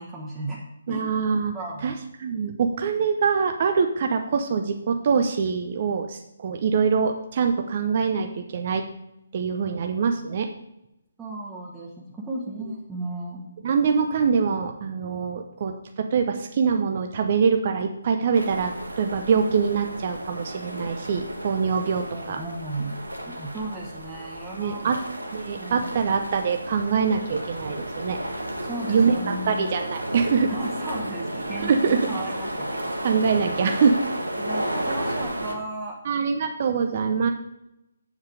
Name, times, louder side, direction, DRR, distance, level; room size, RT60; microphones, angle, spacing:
voice 1, 0.0-1.1 1.5-1.9 11.2-13.4 22.1-23.0 23.3-24.9 25.5-25.9 28.6-29.7 30.5-33.1 34.4-36.0, right 2 dB, 10° right, -5 dB, 1.3 m, -35 dB
voice 2, 0.9-1.5 1.8-1.9 2.2-8.8 9.3-10.5 13.6-22.4 24.5-25.0 25.3-28.2 28.9-29.2 29.4-30.5 31.6-32.1 33.0-34.0 36.0-37.3, right 6 dB, 40° right, 5 dB, 0.7 m, -24 dB
sound 1, 18.3-35.5, right 1 dB, 85° right, 1.4 m, -33 dB
7.5 x 7.3 x 4.9 m, 0.87 s
figure-of-eight pair, 140°, 0 cm